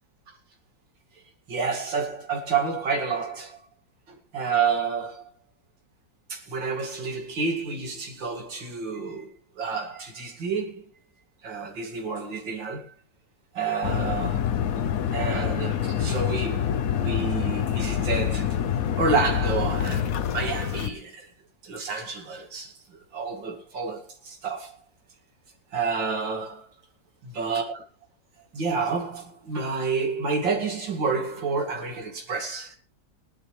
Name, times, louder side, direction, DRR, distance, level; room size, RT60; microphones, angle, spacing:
voice 1, 1.5-3.6 4.1-5.3 6.3-9.3 9.5-10.8 11.4-12.9 13.5-14.5 15.1-18.6 19.0-21.3 21.6-24.8 25.7-26.7 27.2-27.8 28.5-32.8, right 4 dB, 80° right, 3.1 m, -29 dB
sound 1, 13.8-20.9, left 9 dB, 60° left, 1.1 m, -26 dB
19.5 x 11.5 x 3.3 m
omnidirectional pair, 2.0 m